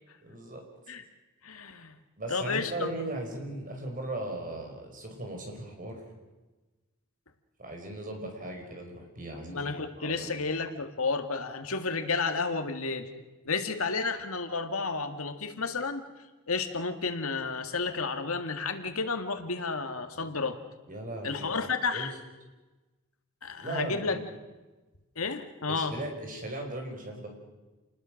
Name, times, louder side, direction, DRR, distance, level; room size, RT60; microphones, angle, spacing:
voice 1, 0.2-0.6 2.2-6.0 7.6-9.7 10.0-10.4 20.2-20.3 20.9-21.5 21.9-22.1 23.6-24.2 25.7-27.3, right 1 dB, 40° right, 3 dB, 5.4 m, -38 dB
voice 2, 1.4-2.0 2.3-3.0 9.4-13.1 13.5-16.1 16.5-20.6 21.2-22.1 23.4-24.2 25.2-25.9, left 4 dB, 80° left, 7 dB, 2.0 m, -31 dB
28.5 x 20.0 x 6.5 m, 1.2 s
head